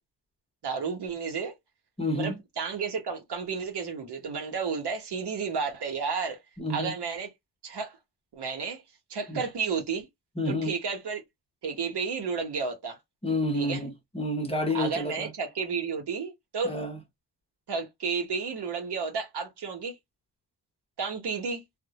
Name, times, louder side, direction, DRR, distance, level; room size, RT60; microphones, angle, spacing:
voice 1, 0.6-1.5 2.2-6.4 6.7-7.3 7.6-8.0 8.3-8.8 9.1-10.1 10.5-11.2 11.6-13.0 13.5-13.8 14.7-16.7 17.7-20.0 21.0-21.6, right 5 dB, 70° right, 1.0 m, -32 dB
voice 2, 2.0-2.4 6.6-6.9 9.3-9.4 10.4-10.7 13.2-15.3 16.6-17.0, left 1 dB, 15° left, 0.8 m, -29 dB
2.2 x 2.1 x 2.8 m
cardioid pair, 80°, 41 cm